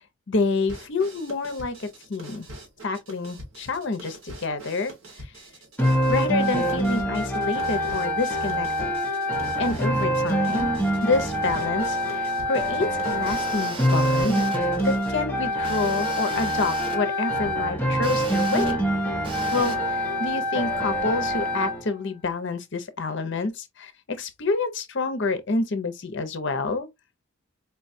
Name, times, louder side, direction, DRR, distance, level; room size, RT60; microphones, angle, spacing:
voice 1, 0.3-2.5 2.8-4.9 5.2-5.3 6.1-8.9 9.6-10.7 11.0-18.8 19.5-26.9, left 3 dB, 55° left, 0.6 m, -28 dB
sound 1, 0.7-15.2, right 1 dB, 70° right, 1.5 m, -44 dB
sound 2, 5.8-21.8, equal, 10° left, 0.7 m, -25 dB
sound 3, 13.3-14.6 15.6-17.0 18.0-18.7 19.2-19.8, right 2 dB, 25° right, 0.8 m, -35 dB
4.5 x 2.2 x 2.6 m
head